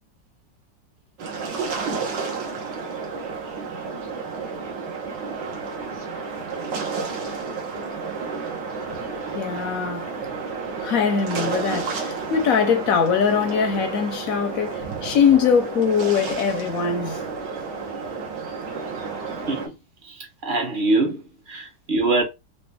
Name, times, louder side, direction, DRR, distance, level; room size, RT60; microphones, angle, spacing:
sound 1, 1.2-19.7, right 4 dB, 70° right, 1.8 m, -31 dB
voice 1, 9.3-10.1 10.8-17.2, left 7 dB, 60° left, 0.9 m, -22 dB
voice 2, 20.0-21.2 21.5-22.2, right 2 dB, 35° right, 0.9 m, -23 dB
4.1 x 2.8 x 3.4 m
omnidirectional pair, 2.0 m